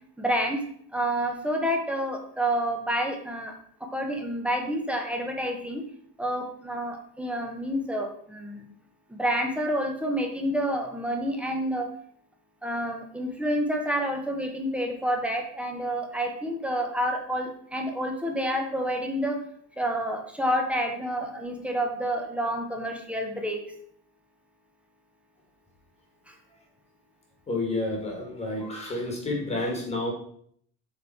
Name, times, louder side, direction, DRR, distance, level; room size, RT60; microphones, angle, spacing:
voice 1, 0.2-0.6 0.9-5.8 6.2-8.7 9.1-11.9 12.6-19.4 19.8-23.6 26.3-26.4, equal, 5° right, 2 dB, 0.6 m, -29 dB
voice 2, 27.5-30.1, left 2 dB, 15° left, 1 dB, 1.4 m, -30 dB
8.0 x 3.6 x 4.3 m, 0.63 s
cardioid pair, 180°, 41 cm